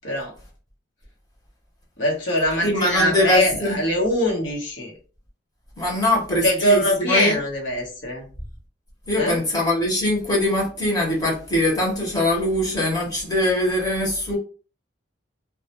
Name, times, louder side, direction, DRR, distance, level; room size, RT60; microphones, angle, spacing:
voice 1, 0.0-0.3 2.0-4.9 6.4-8.3 9.2-9.4, equal, 70° left, 0.9 m, -22 dB
voice 2, 2.6-3.8 5.8-7.4 9.1-14.4, left 1 dB, 20° left, 0.8 m, -22 dB
2.2 x 2.0 x 2.8 m
head